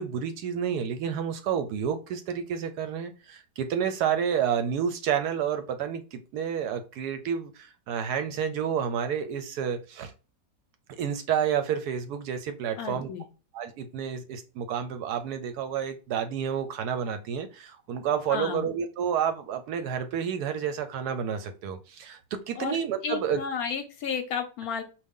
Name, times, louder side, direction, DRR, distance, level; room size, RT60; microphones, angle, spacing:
voice 1, 0.0-10.1 11.0-13.1 13.5-22.2 22.5-23.4, right 8 dB, 70° right, 8 dB, 1.0 m, -30 dB
voice 2, 12.8-13.3 18.3-18.7 22.6-24.8, left 6 dB, 70° left, 7 dB, 0.9 m, -32 dB
4.8 x 2.4 x 3.5 m, 0.33 s
omnidirectional pair, 1.9 m